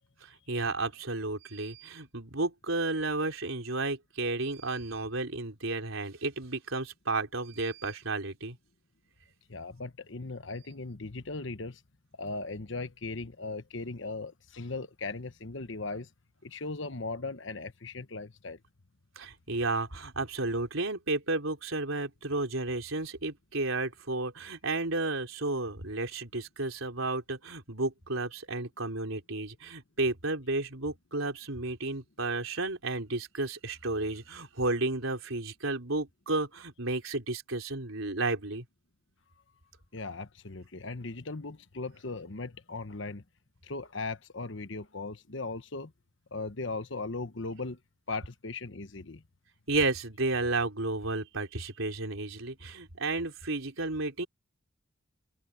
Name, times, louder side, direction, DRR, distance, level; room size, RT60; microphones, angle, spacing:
voice 1, 0.2-8.6 19.2-38.7 49.7-54.3, right 2 dB, 75° right, 4.0 m, -32 dB
voice 2, 9.5-11.8 12.2-16.1 16.4-18.6 39.9-43.2 43.6-45.9 46.3-47.8 48.1-49.2, left 3 dB, 60° left, 1.2 m, -38 dB
head